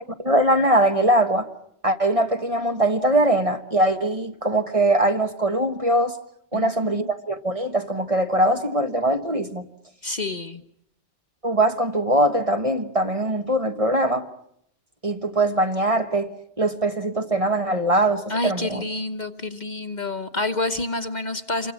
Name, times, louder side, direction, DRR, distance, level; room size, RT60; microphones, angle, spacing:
voice 1, 0.2-1.5 1.8-6.2 6.5-9.7 11.4-14.3 15.0-18.8, right 1 dB, 30° right, 1.4 m, -22 dB
voice 2, 6.5-7.1 10.0-10.6 18.3-21.7, left 2 dB, 40° left, 1.3 m, -28 dB
27.5 x 24.0 x 7.4 m
omnidirectional pair, 1.2 m